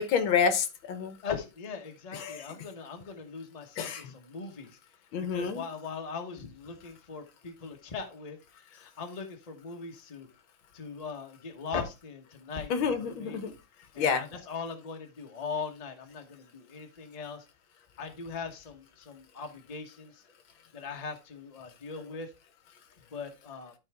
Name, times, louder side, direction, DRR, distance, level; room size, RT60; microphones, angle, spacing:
voice 1, 0.0-1.1 2.1-2.5 3.8-4.1 5.1-5.6 12.7-13.5 14.0-14.3, left 6 dB, 70° left, 10 dB, 1.7 m, -28 dB
voice 2, 1.2-4.7 5.2-10.3 10.7-13.4 13.9-17.5 18.0-20.2 20.7-22.3 23.1-23.7, left 5 dB, 25° left, 4 dB, 0.9 m, -40 dB
12.0 x 4.3 x 3.5 m, 0.26 s
omnidirectional pair, 2.3 m